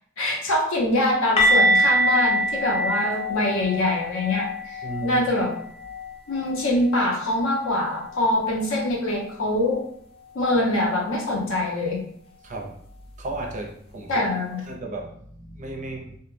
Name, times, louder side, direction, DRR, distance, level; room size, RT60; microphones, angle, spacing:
voice 1, 0.2-5.6 6.3-9.8 10.3-12.0 14.1-14.7, left 1 dB, 70° left, -1 dB, 0.6 m, -24 dB
sound 1, 1.4-7.1 7.4-7.7 8.0-8.2 11.4-11.5, equal, 30° left, 0.4 m, -24 dB
voice 2, 4.8-5.2 12.4-12.8 13.2-14.3 14.7-16.2, right 2 dB, 35° right, 1 dB, 0.4 m, -34 dB
2.2 x 2.1 x 3.0 m, 0.66 s
head